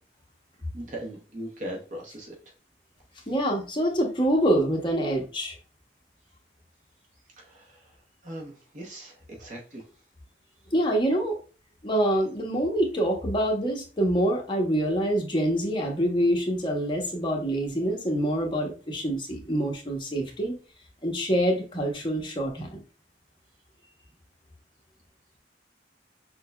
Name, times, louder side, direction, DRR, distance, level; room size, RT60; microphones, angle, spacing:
voice 1, 0.7-2.4 3.2-3.3 7.3-7.9 8.2-9.8, right 1 dB, 45° right, 0 dB, 0.8 m, -39 dB
voice 2, 3.3-5.6 10.7-11.4 11.8-20.6 21.0-22.8, right 1 dB, 25° left, 0 dB, 0.8 m, -26 dB
6.2 x 2.2 x 2.2 m, 0.36 s
head